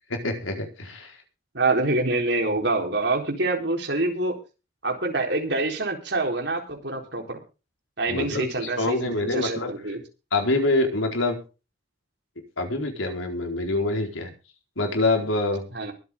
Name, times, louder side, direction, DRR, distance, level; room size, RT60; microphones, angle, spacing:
voice 1, 0.1-1.2 8.1-9.7 10.3-11.4 12.6-14.3 14.8-15.6, left 2 dB, 90° left, 3 dB, 4.5 m, -25 dB
voice 2, 1.5-4.4 4.8-7.4 8.0-10.0 15.7-15.9, right 2 dB, 60° right, 3 dB, 4.1 m, -26 dB
23.0 x 8.5 x 3.7 m, 0.32 s
head